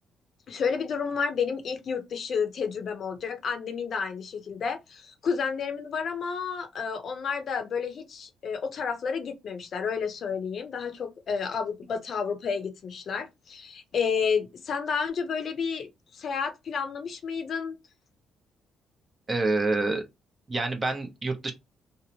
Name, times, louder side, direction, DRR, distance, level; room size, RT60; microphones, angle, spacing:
voice 1, 0.5-17.8, left 6 dB, 55° left, 0.6 m, -31 dB
voice 2, 19.3-20.0 20.5-21.5, right 3 dB, 25° right, 0.7 m, -27 dB
2.7 x 2.0 x 2.8 m
cardioid pair, 90°, 0 cm